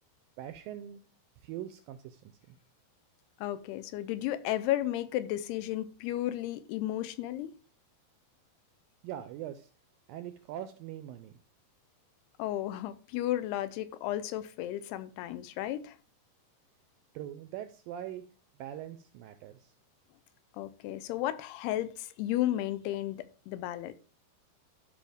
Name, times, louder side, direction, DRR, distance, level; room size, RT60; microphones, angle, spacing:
voice 1, 0.4-1.0 1.4-2.6 9.0-9.7 10.1-11.3 17.1-18.2 18.6-19.7, right 11 dB, 85° right, 2.0 m, -42 dB
voice 2, 3.4-7.5 12.4-16.0 20.5-24.0, left 13 dB, 90° left, 2.7 m, -33 dB
12.5 x 5.4 x 3.5 m
omnidirectional pair, 4.6 m